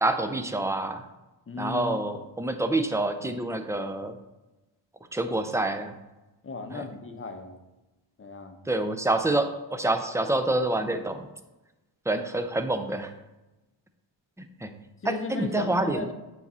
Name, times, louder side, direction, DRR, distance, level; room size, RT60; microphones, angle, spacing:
voice 1, 0.0-1.0 1.6-4.2 5.1-5.9 6.7-6.8 8.7-11.2 12.1-13.1 14.4-14.7 15.1-16.1, right 2 dB, 5° right, 7 dB, 0.4 m, -27 dB
voice 2, 1.5-2.0 6.4-7.6 8.2-8.6 15.0-16.1, left 3 dB, 25° left, 6 dB, 0.7 m, -36 dB
8.5 x 4.0 x 4.2 m, 1.0 s
wide cardioid pair, 130°, 47 cm